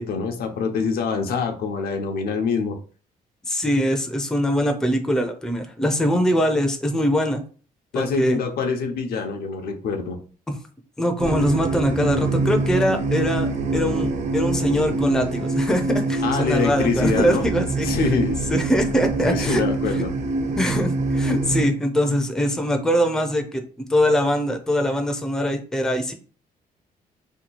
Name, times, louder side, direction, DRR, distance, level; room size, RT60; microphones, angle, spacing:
voice 1, 0.0-2.8 7.9-10.2 16.2-17.5 17.8-18.4 19.3-20.1 20.6-20.7, left 5 dB, 75° left, 4 dB, 0.7 m, -25 dB
voice 2, 3.5-7.4 7.9-8.4 10.5-10.6 11.0-17.9 18.5-19.6 19.9-20.0 20.6-23.6 23.9-26.1, equal, 5° left, 4 dB, 0.5 m, -22 dB
sound 1, 11.2-21.7, right 3 dB, 50° right, 0.6 m, -25 dB
2.9 x 2.3 x 4.0 m, 0.39 s
cardioid pair, 125°, 16 cm